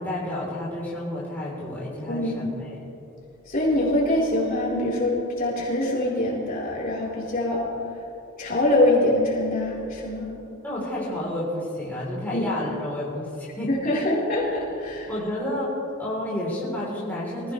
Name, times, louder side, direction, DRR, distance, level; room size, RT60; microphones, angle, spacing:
voice 1, 0.0-2.7 10.6-14.0 15.1-15.7 16.0-17.5, left 1 dB, 10° left, -7 dB, 3.8 m, -30 dB
voice 2, 2.1-2.5 3.5-7.7 8.4-10.3 12.3-12.4 13.7-15.1, left 1 dB, 45° left, -6 dB, 4.4 m, -24 dB
25.0 x 16.5 x 3.4 m, 2.9 s
head